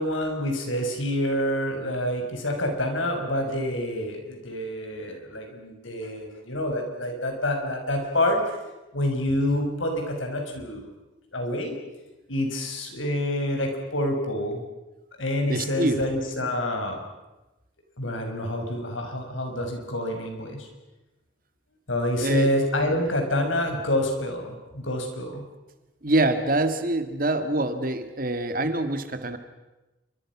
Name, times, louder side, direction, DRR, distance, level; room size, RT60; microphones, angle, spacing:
voice 1, 0.0-8.6 8.9-10.9 11.3-11.7 12.3-14.6 15.2-17.0 18.0-20.7 21.9-25.4, left 1 dB, 90° left, 4 dB, 5.9 m, -27 dB
voice 2, 15.5-16.0 22.2-22.5 26.0-29.4, right 2 dB, 45° right, 9 dB, 2.1 m, -25 dB
28.0 x 25.0 x 6.2 m, 1.0 s
head